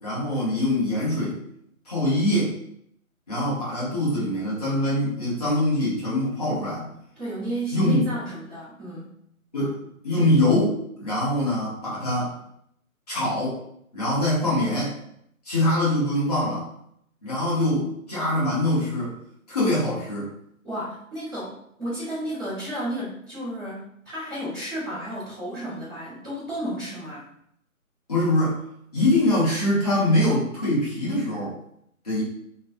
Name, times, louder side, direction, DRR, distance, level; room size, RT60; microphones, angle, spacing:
voice 1, 0.0-1.4 1.8-2.6 3.3-6.9 7.7-8.0 9.5-12.3 13.1-13.6 13.9-14.9 15.4-16.7 17.2-19.1 19.5-20.3 28.1-28.6 28.9-31.5 32.0-32.2, left 1 dB, 25° left, -8 dB, 1.2 m, -23 dB
voice 2, 7.1-9.1 20.6-27.3, right 1 dB, 5° right, -24 dB, 0.8 m, -32 dB
3.2 x 3.2 x 2.5 m, 0.71 s
figure-of-eight pair, 150°, 43 cm